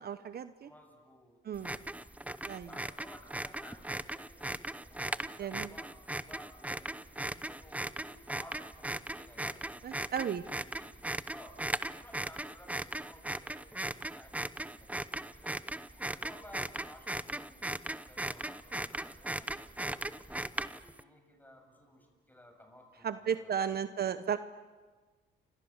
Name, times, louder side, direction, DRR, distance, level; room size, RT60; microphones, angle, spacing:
voice 1, 0.0-0.7 1.4-1.8 2.5-2.7 5.4-5.7 9.8-10.4 23.0-24.4, right 8 dB, 50° right, 11 dB, 1.0 m, -34 dB
voice 2, 0.6-2.1 2.7-7.1 7.4-9.6 10.6-10.9 11.3-11.6 11.9-15.0 15.3-15.5 15.9-20.1 20.5-24.2, left 1 dB, 10° left, 3 dB, 7.7 m, -56 dB
sound 1, 1.6-21.0, right 1 dB, 5° right, 0.8 m, -38 dB
30.0 x 26.0 x 7.4 m, 1.4 s
cardioid pair, 90°, 20 cm